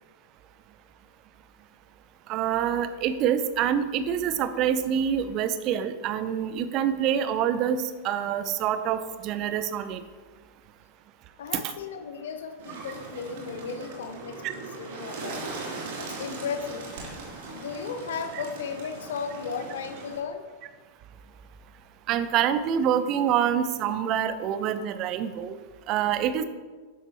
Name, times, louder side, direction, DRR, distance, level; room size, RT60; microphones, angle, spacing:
voice 1, 2.3-10.0 14.4-14.5 22.1-25.6 25.9-26.4, right 9 dB, 40° right, 11 dB, 0.7 m, -26 dB
voice 2, 11.4-15.5 16.0-16.9 17.5-20.5, left 6 dB, 60° left, 8 dB, 1.1 m, -35 dB
Bird, 12.6-20.2, right 3 dB, 55° right, 3.0 m, -39 dB
12.0 x 10.5 x 3.0 m, 1.4 s
figure-of-eight pair, 90°, 0 cm